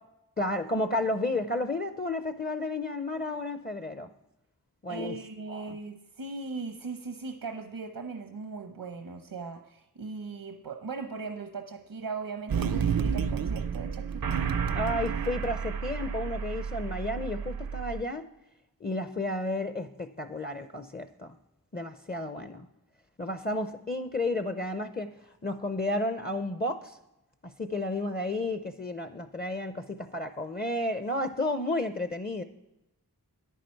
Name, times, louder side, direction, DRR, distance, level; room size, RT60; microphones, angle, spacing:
voice 1, 0.4-4.1 4.8-5.2 5.5-5.8 14.7-18.2 18.8-21.4 21.7-22.7 23.2-25.1 25.4-27.0 27.6-32.4, left 2 dB, 25° left, 9 dB, 0.6 m, -32 dB
voice 2, 4.9-14.3, right 4 dB, 90° right, 5 dB, 0.9 m, -39 dB
sound 1, 12.5-18.0, right 6 dB, 65° right, 0.5 m, -31 dB
10.5 x 9.2 x 4.5 m, 0.91 s
wide cardioid pair, 50°, 38 cm